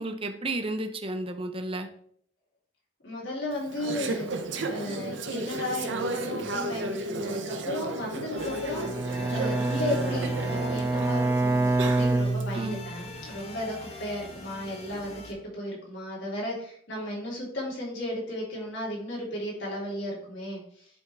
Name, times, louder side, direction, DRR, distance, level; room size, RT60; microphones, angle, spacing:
voice 1, 0.0-1.9 12.5-12.8, right 2 dB, 30° right, 6 dB, 0.8 m, -32 dB
voice 2, 3.0-4.3 4.7-20.9, left 1 dB, 70° left, -5 dB, 3.7 m, -34 dB
Conversation / Chatter, 3.5-12.4, right 2 dB, 75° right, 0.9 m, -34 dB
sound 1, 8.4-15.3, left 2 dB, 35° left, 1.2 m, -44 dB
Bowed string instrument, 8.7-13.1, right 2 dB, 15° right, 0.4 m, -27 dB
11.0 x 3.6 x 4.7 m, 0.63 s
head